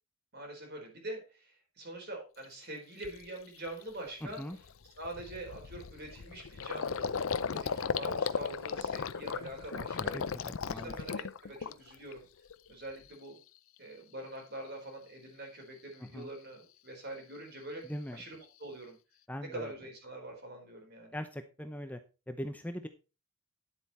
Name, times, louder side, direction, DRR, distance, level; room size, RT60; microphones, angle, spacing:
voice 1, 0.3-4.4 5.0-10.2 10.7-12.3 12.7-13.3 13.8-17.8 18.1-19.0 19.4-21.2, right 1 dB, 50° right, 2 dB, 4.4 m, -44 dB
Gurgling, 2.4-2.5 3.0-3.3 3.7-12.1 12.5-13.1, left 6 dB, 65° left, 0.6 m, -36 dB
voice 2, 4.2-4.6 10.0-11.0 16.1-16.3 17.9-18.2 19.3-19.7 21.1-22.0 22.3-22.9, equal, 5° left, 7 dB, 0.7 m, -40 dB
10.5 x 7.9 x 4.2 m, 0.31 s
head